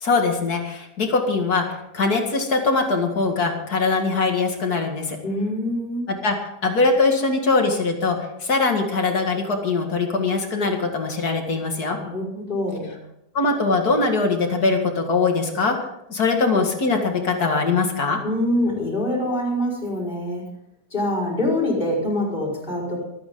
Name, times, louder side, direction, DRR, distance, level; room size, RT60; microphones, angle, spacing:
voice 1, 0.0-5.2 6.1-6.3 6.6-12.0 13.3-15.8 16.1-18.2, left 3 dB, 60° left, 3 dB, 2.5 m, -22 dB
voice 2, 5.2-6.1 12.0-12.9 18.2-20.4 20.9-23.0, left 1 dB, 30° left, -2 dB, 5.3 m, -25 dB
25.0 x 9.5 x 3.8 m, 0.82 s
omnidirectional pair, 1.8 m